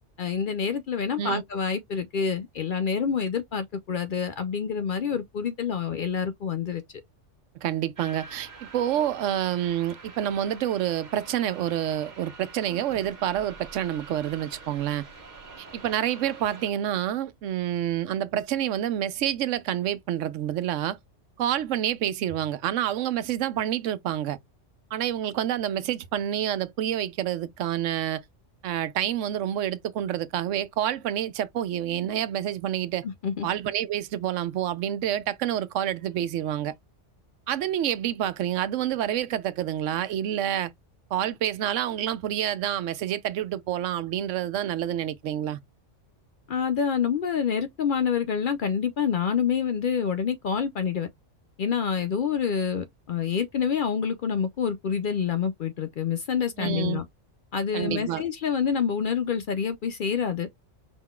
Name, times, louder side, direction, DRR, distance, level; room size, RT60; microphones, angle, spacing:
voice 1, 0.2-6.8 33.0-33.5 46.5-51.1 51.6-57.1 57.5-60.5, left 7 dB, 60° left, 0.5 m, -27 dB
voice 2, 7.6-15.0 15.6-21.0 21.4-24.4 24.9-28.2 28.6-33.0 33.4-36.7 37.5-40.7 41.1-45.6 56.6-57.0 57.7-58.2, right 11 dB, 85° right, 1.0 m, -28 dB
sound 1, 8.0-16.7, right 4 dB, 40° right, 1.0 m, -46 dB
5.0 x 3.7 x 2.3 m
omnidirectional pair, 1.2 m